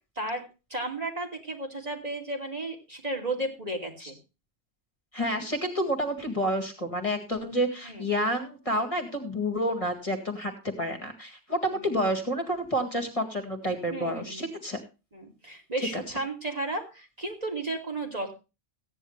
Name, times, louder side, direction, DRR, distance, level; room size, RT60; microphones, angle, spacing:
voice 1, 0.7-4.1 7.8-8.1 13.9-14.5 15.1-18.4, right 2 dB, 35° right, 1 dB, 3.0 m, -33 dB
voice 2, 5.1-14.8 15.9-16.0, equal, 30° left, 4 dB, 2.2 m, -29 dB
15.5 x 9.9 x 3.3 m, 0.30 s
omnidirectional pair, 1.1 m